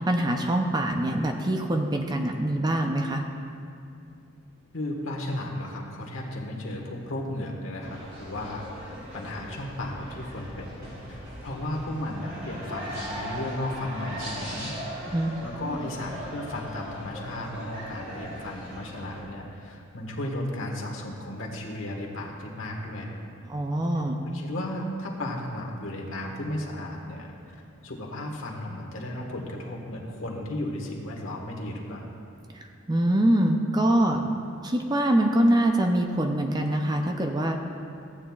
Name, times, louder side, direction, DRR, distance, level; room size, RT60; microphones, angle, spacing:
voice 1, 0.0-3.2 15.1-15.3 23.5-24.2 32.5-34.3 34.6-37.6, right 1 dB, 20° right, 3 dB, 0.5 m, -24 dB
voice 2, 4.7-10.8 11.1-14.7 15.4-23.1 24.2-32.1, left 1 dB, 70° left, -1 dB, 1.4 m, -34 dB
sound 1, 7.8-19.2, equal, 45° right, 2.3 m, -39 dB
15.0 x 8.8 x 2.3 m, 2.5 s
head